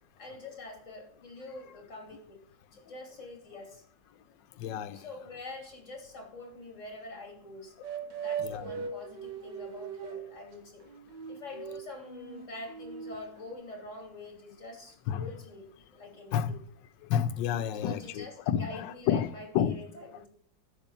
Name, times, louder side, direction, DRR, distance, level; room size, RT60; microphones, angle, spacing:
voice 1, 0.2-2.4 2.7-3.8 4.9-7.7 8.2-10.9 11.3-16.6 17.8-20.3, left 2 dB, 40° left, 3.1 m, -45 dB
voice 2, 4.6-5.1 8.4-8.9 15.1-15.3 16.3-16.6 17.1-19.8, left 9 dB, 75° left, 1.3 m, -30 dB
sound 1, 7.8-10.3 10.8-13.5, right 7 dB, 65° right, 1.8 m, -39 dB
9.8 x 7.5 x 5.6 m
omnidirectional pair, 2.1 m